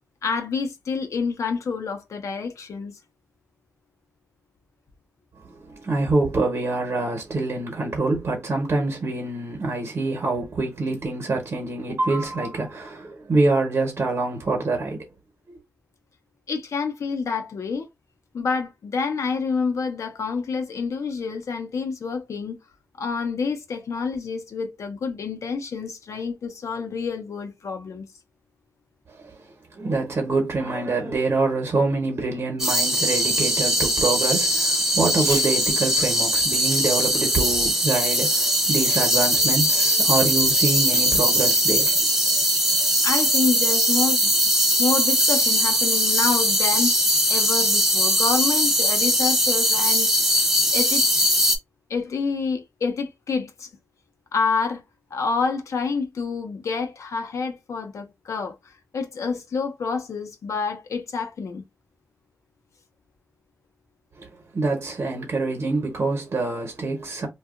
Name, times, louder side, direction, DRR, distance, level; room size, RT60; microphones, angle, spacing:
voice 1, 0.2-3.0 16.5-17.9 18.3-22.6 23.0-28.1 43.0-44.3 44.8-47.0 47.3-50.1 50.7-51.3 51.9-53.7 54.3-54.8 55.1-61.6, left 5 dB, 80° left, 0.6 m, -28 dB
voice 2, 5.7-15.0 15.5-15.6 29.8-42.1 64.2-64.3 64.5-67.3, right 3 dB, 55° right, 0.9 m, -25 dB
sound 1, 32.6-51.6, equal, 5° right, 0.5 m, -20 dB
Packing tape duct tape / Tearing, 35.0-35.5 35.9-36.1 36.6-36.9 37.4-37.9 38.7-39.1 39.3-39.4 40.9-41.1 41.4-41.5 41.8-42.2, right 4 dB, 80° right, 0.6 m, -35 dB
2.7 x 2.3 x 2.3 m
wide cardioid pair, 100°, 5 cm